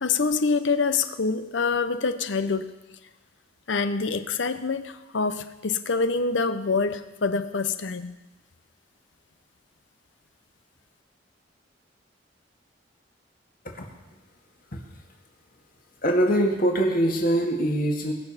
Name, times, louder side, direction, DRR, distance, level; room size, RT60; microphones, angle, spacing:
voice 1, 0.0-2.7 3.7-8.2, left 4 dB, 85° left, 11 dB, 0.8 m, -26 dB
voice 2, 16.0-18.1, right 1 dB, 50° left, 1 dB, 2.1 m, -23 dB
21.0 x 7.0 x 5.7 m, 1.1 s
head